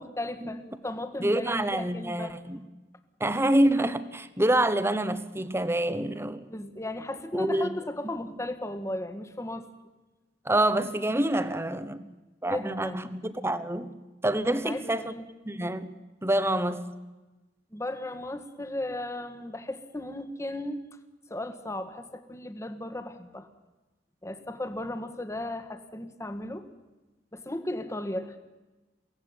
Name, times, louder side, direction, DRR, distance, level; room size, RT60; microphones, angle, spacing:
voice 1, 0.0-2.4 6.5-9.7 12.5-13.1 14.5-15.2 17.7-20.9 21.3-23.5 24.2-26.7 27.3-28.4, left 1 dB, 15° left, 1.6 m, -35 dB
voice 2, 1.2-2.6 3.2-6.5 7.3-7.7 8.3-8.4 10.4-12.0 12.4-13.9 14.2-15.1 15.4-15.9 16.2-16.8, right 1 dB, 15° right, 1.1 m, -26 dB
23.0 x 17.0 x 9.7 m
head